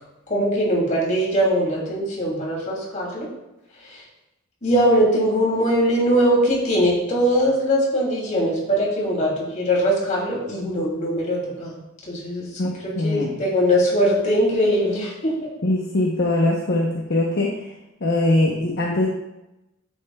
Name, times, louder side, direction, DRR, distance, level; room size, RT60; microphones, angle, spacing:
voice 1, 0.3-3.3 3.9-4.0 4.6-11.7 12.1-12.5 12.8-15.3, equal, 40° left, -4 dB, 3.0 m, -21 dB
voice 2, 12.9-13.3 15.6-17.5 18.0-19.1, left 2 dB, 55° left, -2 dB, 1.0 m, -21 dB
10.0 x 8.5 x 2.4 m, 0.94 s
head